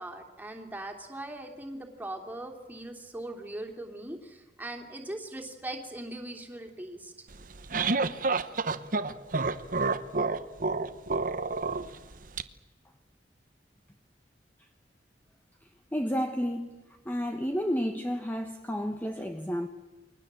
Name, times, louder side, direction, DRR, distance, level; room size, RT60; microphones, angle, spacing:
voice 1, 0.0-7.1, right 1 dB, 10° right, 3.1 m, -40 dB
sound 1, 7.3-12.4, right 3 dB, 50° right, 1.0 m, -29 dB
voice 2, 15.9-16.8 17.0-19.7, equal, 10° left, 1.2 m, -31 dB
29.5 x 22.5 x 7.6 m
head